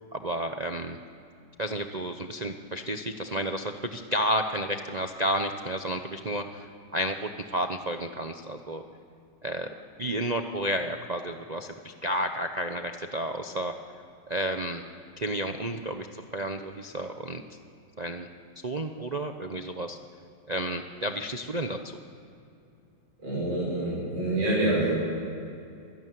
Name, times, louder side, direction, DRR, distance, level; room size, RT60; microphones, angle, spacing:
voice 1, 0.1-1.0 1.6-6.7 6.9-8.8 9.4-9.7 10.0-13.7 14.3-14.8 15.2-16.1 16.3-17.4 18.0-18.3 18.6-20.0 20.5-21.8, right 1 dB, 55° right, 6 dB, 0.4 m, -31 dB
voice 2, 23.2-25.0, right 1 dB, 80° right, -6 dB, 7.4 m, -26 dB
26.0 x 12.5 x 9.4 m, 2.6 s
omnidirectional pair, 2.1 m